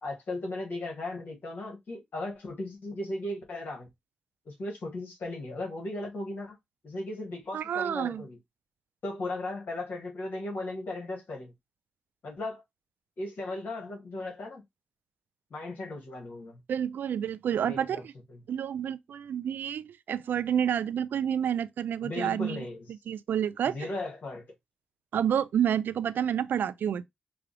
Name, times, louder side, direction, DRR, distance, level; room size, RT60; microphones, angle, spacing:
voice 1, 0.0-3.9 4.5-6.6 6.8-8.4 9.0-11.5 12.2-12.6 13.2-14.6 15.5-16.6 17.6-18.0 18.3-18.4 22.0-22.9 23.7-24.5, left 2 dB, 65° left, 1.8 m, -36 dB
voice 2, 7.5-8.2 16.7-18.1 18.5-22.7 23.1-23.8 25.1-27.1, right 9 dB, 70° right, 0.3 m, -29 dB
4.9 x 2.4 x 3.2 m
supercardioid pair, 40°, 3 cm